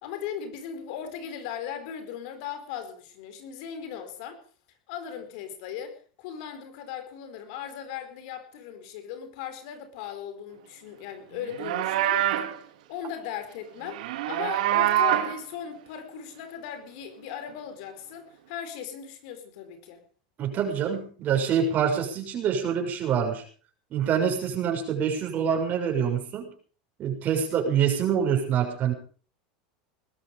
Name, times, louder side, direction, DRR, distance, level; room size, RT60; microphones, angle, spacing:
voice 1, 0.0-4.4 4.9-12.2 12.9-20.0, left 8 dB, 65° left, 9 dB, 4.4 m, -38 dB
Livestock farm animals working animals, 11.4-12.6 13.9-15.4, right 13 dB, 75° right, 2.2 m, -25 dB
voice 2, 20.4-23.4 23.9-26.5 27.0-28.9, right 7 dB, 40° right, 2 dB, 6.7 m, -26 dB
20.5 x 13.0 x 5.3 m, 0.42 s
hypercardioid pair, 105°, 4 cm